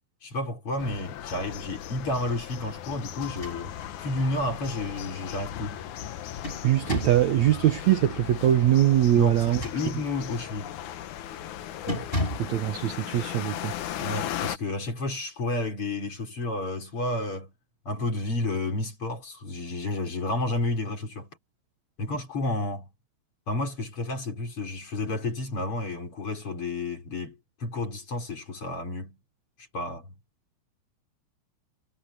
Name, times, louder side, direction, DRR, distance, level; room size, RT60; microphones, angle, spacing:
voice 1, 0.2-3.7 4.0-5.8 9.1-10.8 14.0-17.5 17.9-21.4 22.0-22.9 23.5-29.2 29.7-30.1, left 2 dB, 30° left, 5.4 m, -31 dB
sound 1, 0.8-14.6, left 11 dB, 70° left, 1.9 m, -37 dB
sound 2, 3.2-4.0 4.4-4.5 6.0-7.3 9.3-10.2 10.7-11.0 11.3-11.5 11.9-12.6, left 1 dB, 10° left, 7.9 m, -34 dB
voice 2, 6.6-9.6 11.9-12.0 12.4-13.7, right 12 dB, 80° right, 1.6 m, -22 dB
omnidirectional pair, 4.9 m